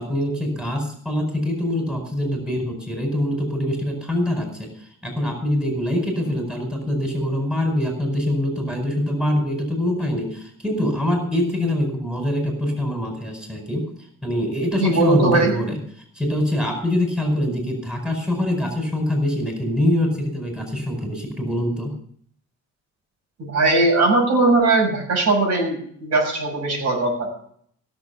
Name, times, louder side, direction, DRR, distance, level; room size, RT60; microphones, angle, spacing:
voice 1, 0.0-13.8 14.2-15.8 16.1-21.9, left 1 dB, 5° right, 2 dB, 4.8 m, -24 dB
voice 2, 14.8-15.6 23.4-27.3, right 2 dB, 60° right, 0 dB, 6.5 m, -19 dB
16.5 x 7.2 x 6.9 m, 0.62 s
cardioid pair, 90°, 30 cm